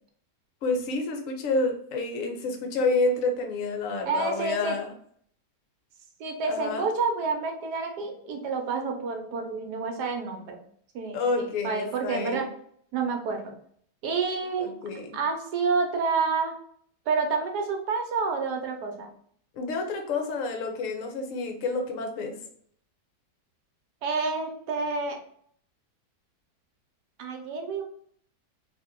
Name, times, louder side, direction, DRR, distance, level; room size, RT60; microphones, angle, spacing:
voice 1, 0.6-4.9 6.5-6.9 11.1-12.5 14.6-15.2 19.5-22.4, left 3 dB, 65° left, 3 dB, 0.9 m, -29 dB
voice 2, 4.1-4.8 6.2-10.6 10.9-12.5 12.9-13.5 14.0-14.7 15.1-16.5 17.1-19.1 24.0-25.2 27.2-27.8, right 4 dB, 70° right, 4 dB, 1.2 m, -29 dB
2.8 x 2.8 x 3.5 m, 0.63 s
omnidirectional pair, 1.9 m